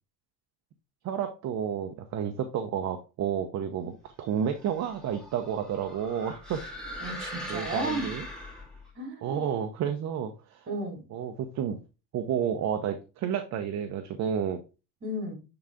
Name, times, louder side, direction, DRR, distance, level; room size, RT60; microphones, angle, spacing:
voice 1, 1.0-6.6 7.5-8.3 9.2-10.7 11.1-11.8 12.1-14.6, right 8 dB, 55° right, 7 dB, 0.9 m, -31 dB
sound 1, 4.4-8.9, equal, ahead, 2.3 m, -41 dB
voice 2, 7.0-8.1 9.0-9.4 10.7-11.0 15.0-15.4, right 1 dB, 35° right, 2 dB, 3.5 m, -34 dB
7.1 x 3.9 x 3.5 m, 0.30 s
cardioid pair, 100°, 32 cm